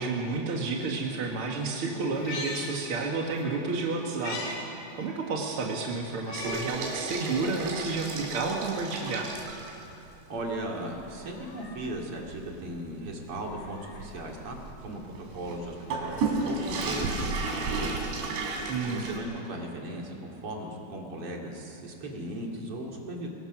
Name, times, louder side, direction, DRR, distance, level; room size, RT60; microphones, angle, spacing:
voice 1, 0.0-4.6 4.9-9.3 18.7-19.1, right 3 dB, 55° right, -1 dB, 1.5 m, -31 dB
Meow, 2.1-3.4 3.8-4.6 5.0-5.1 6.2-6.9 7.4-7.5 8.4-9.4 11.0-12.0 13.3-14.2 15.6-17.3 18.5-18.6, left 3 dB, 75° left, 4.7 m, -42 dB
sound 1, 6.3-9.9 10.3-10.5 10.9-11.0 11.5-19.2, right 3 dB, 80° right, 4.9 m, -33 dB
voice 2, 10.3-18.0 18.8-23.3, right 1 dB, 40° right, 0 dB, 2.9 m, -37 dB
24.5 x 22.0 x 6.1 m, 3.0 s
omnidirectional pair, 5.1 m